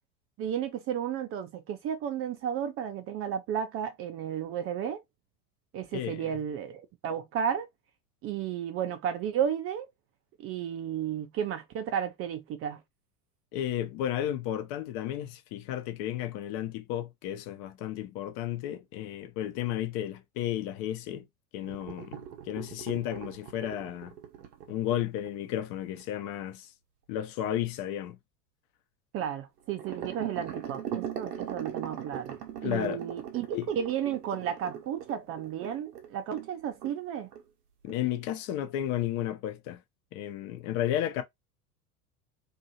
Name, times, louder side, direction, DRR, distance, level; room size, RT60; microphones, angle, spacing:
voice 1, 0.4-5.0 5.7-7.7 8.2-9.9 10.4-12.8 29.1-32.4 32.6-37.3, right 9 dB, 30° right, 0.5 m, -33 dB
voice 2, 5.9-6.3 13.5-21.3 21.5-22.2 22.5-24.1 24.7-26.7 27.1-28.2 32.6-33.0 33.5-33.7 37.8-39.8 40.1-41.2, left 11 dB, 45° left, 0.8 m, -33 dB
sound 1, 21.6-26.3 29.7-36.5 36.8-37.0 37.3-37.4 37.9-38.0, right 9 dB, 75° right, 0.9 m, -40 dB
2.7 x 2.6 x 2.8 m
hypercardioid pair, 90°, 47 cm